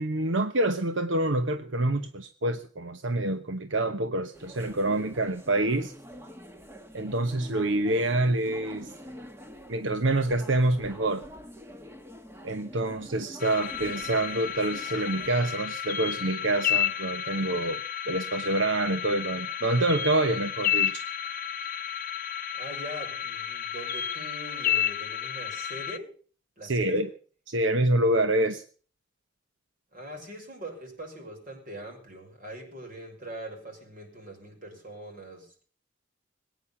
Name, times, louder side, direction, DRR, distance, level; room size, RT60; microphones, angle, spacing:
voice 1, 0.0-5.9 6.9-8.9 9.7-11.2 12.4-17.8 18.1-21.0 26.6-27.1 27.5-28.6, right 2 dB, 85° right, 9 dB, 1.1 m, -27 dB
sound 1, 4.3-15.4, equal, 15° right, 1.4 m, -47 dB
sound 2, 13.4-26.0, left 10 dB, 50° left, 0.8 m, -31 dB
voice 2, 22.5-26.1 26.6-27.1 29.9-35.6, right 1 dB, 45° right, 3 dB, 5.8 m, -42 dB
20.5 x 9.5 x 7.1 m, 0.42 s
head